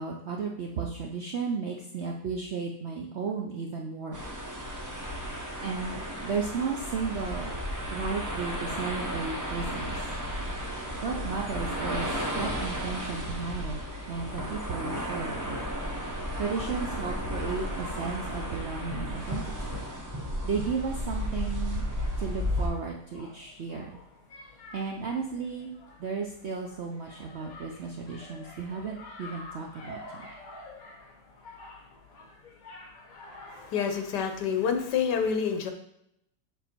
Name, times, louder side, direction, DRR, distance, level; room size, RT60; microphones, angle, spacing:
voice 1, 0.0-4.2 5.6-7.5 7.9-10.0 11.0-13.8 14.1-15.6 16.4-19.4 19.7-19.8 20.4-21.8 22.2-24.0 24.7-25.7 26.0-30.2, right 5 dB, 65° right, 0 dB, 0.6 m, -34 dB
sound 1, 4.1-22.7, equal, 20° right, 0.6 m, -33 dB
sound 2, 21.9-34.9, left 2 dB, 60° left, 1.6 m, -49 dB
voice 2, 33.5-35.7, left 7 dB, 80° left, 5 dB, 1.4 m, -28 dB
7.1 x 3.6 x 4.4 m, 0.76 s
omnidirectional pair, 1.8 m